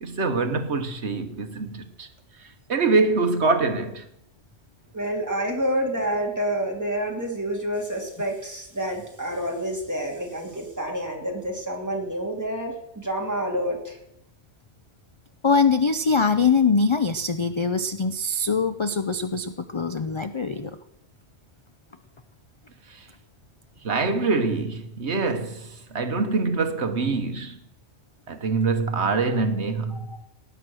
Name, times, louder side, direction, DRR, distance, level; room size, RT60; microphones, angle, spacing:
voice 1, 0.0-2.1 2.7-4.1 22.9-23.1 23.8-27.6 28.3-30.0, right 3 dB, 65° right, 1.4 m, -24 dB
voice 2, 4.9-14.0, equal, 15° right, 2.8 m, -28 dB
voice 3, 15.4-20.7 29.9-30.2, left 4 dB, 35° left, 0.5 m, -23 dB
18.5 x 9.2 x 6.3 m
omnidirectional pair, 1.2 m